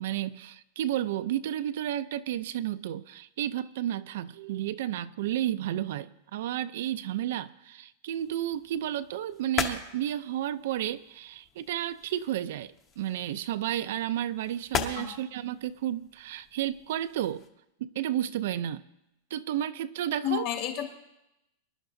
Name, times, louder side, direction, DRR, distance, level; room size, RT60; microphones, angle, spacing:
voice 1, 0.0-17.4 17.8-18.8 19.3-20.5, right 12 dB, 60° right, 12 dB, 0.5 m, -32 dB
sound 1, 8.1-17.5, left 6 dB, 25° left, 0.9 m, -40 dB
voice 2, 20.2-20.9, left 11 dB, 40° left, 2 dB, 1.9 m, -31 dB
24.5 x 11.5 x 2.7 m, 0.87 s
supercardioid pair, 175°, 0 cm